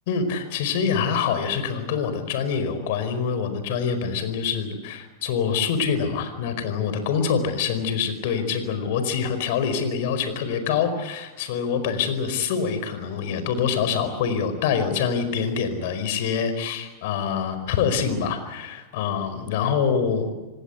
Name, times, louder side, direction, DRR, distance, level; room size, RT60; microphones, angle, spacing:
voice 1, 0.1-20.4, left 6 dB, 60° left, 10 dB, 4.8 m, -25 dB
27.5 x 19.0 x 8.2 m, 1.1 s
hypercardioid pair, 95°, 0 cm